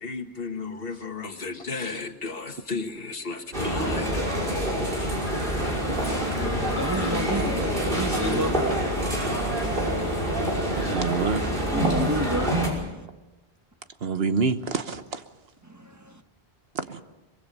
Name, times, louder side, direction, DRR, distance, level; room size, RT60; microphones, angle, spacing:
voice 1, 0.0-5.1 6.7-6.8 7.3-7.6 9.0-9.1, left 4 dB, 65° left, 6 dB, 1.8 m, -35 dB
sound 1, 3.5-12.7, equal, 60° right, 5.6 m, -26 dB
voice 2, 6.8-7.6 7.9-8.5 11.7-12.5 15.7-16.1, right 1 dB, 15° right, 6 dB, 1.1 m, -29 dB
voice 3, 10.8-11.4 14.0-15.2 16.7-17.0, right 5 dB, 75° right, 10 dB, 1.3 m, -27 dB
23.0 x 22.0 x 5.5 m, 1.1 s
omnidirectional pair, 1.0 m